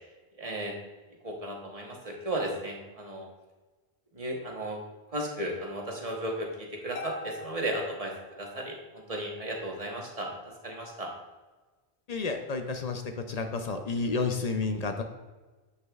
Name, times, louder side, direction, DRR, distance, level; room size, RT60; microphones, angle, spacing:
voice 1, 0.4-0.7 1.2-3.3 4.1-4.8 5.1-11.1, right 1 dB, 35° right, 0 dB, 1.1 m, -35 dB
Harp, 7.0-8.8, left 2 dB, 80° left, 0.9 m, -44 dB
voice 2, 12.1-15.0, left 4 dB, 50° left, 6 dB, 0.5 m, -31 dB
8.2 x 6.3 x 2.3 m, 1.2 s
omnidirectional pair, 1.1 m